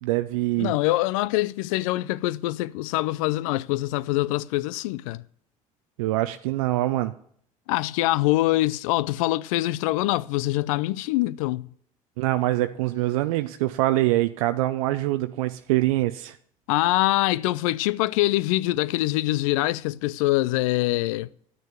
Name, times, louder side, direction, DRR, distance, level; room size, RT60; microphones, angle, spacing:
voice 1, 0.0-0.7 6.0-7.1 12.2-16.4, right 16 dB, 75° right, 0.5 m, -24 dB
voice 2, 0.6-5.2 7.7-11.7 16.7-21.3, left 18 dB, 70° left, 0.4 m, -24 dB
12.0 x 6.4 x 7.5 m
hypercardioid pair, 65°, 18 cm